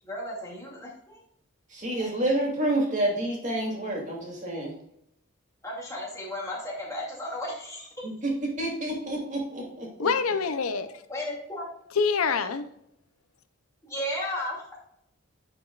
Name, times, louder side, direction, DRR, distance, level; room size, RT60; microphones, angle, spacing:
voice 1, 0.0-1.2 2.0-2.1 5.6-7.9 11.1-11.7 13.8-14.8, left 1 dB, 15° left, -4 dB, 2.4 m, -34 dB
voice 2, 1.7-4.7 8.0-10.1, right 1 dB, 35° right, -2 dB, 2.4 m, -29 dB
voice 3, 10.0-11.0 11.9-12.7, left 5 dB, 80° left, 10 dB, 0.6 m, -26 dB
10.5 x 5.3 x 2.4 m, 0.76 s
head